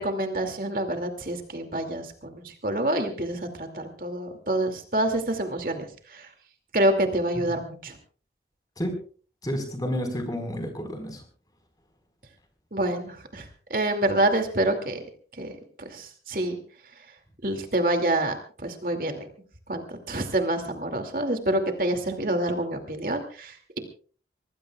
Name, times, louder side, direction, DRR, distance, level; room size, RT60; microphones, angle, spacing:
voice 1, 0.0-6.3 6.7-8.0 12.7-15.0 15.4-15.5 15.8-16.6 17.4-19.3 19.7-23.8, right 1 dB, 50° right, 5 dB, 2.5 m, -27 dB
voice 2, 9.4-11.2, equal, 20° left, 5 dB, 4.6 m, -30 dB
25.0 x 19.5 x 2.4 m, 0.41 s
head